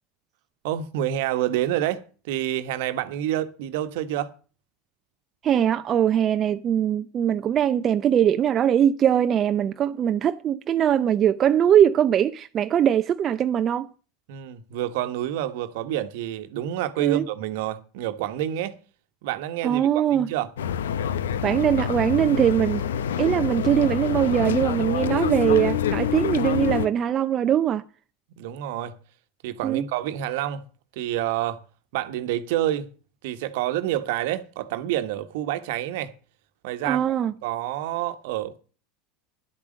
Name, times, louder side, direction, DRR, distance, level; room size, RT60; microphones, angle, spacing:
voice 1, 0.6-4.3 14.3-18.8 19.2-20.5 28.4-29.0 29.4-30.6 30.9-31.6 31.9-32.9 33.2-36.1 36.6-37.2 37.4-38.6, right 12 dB, 65° right, 1.3 m, -28 dB
voice 2, 5.4-13.9 17.0-17.2 19.6-20.3 21.4-22.8 23.2-27.8 29.6-29.8 36.8-37.3, right 9 dB, 40° right, 0.6 m, -21 dB
sound 1, 20.6-26.9, left 9 dB, 80° left, 0.8 m, -26 dB
11.0 x 8.7 x 6.4 m
hypercardioid pair, 85°, 0 cm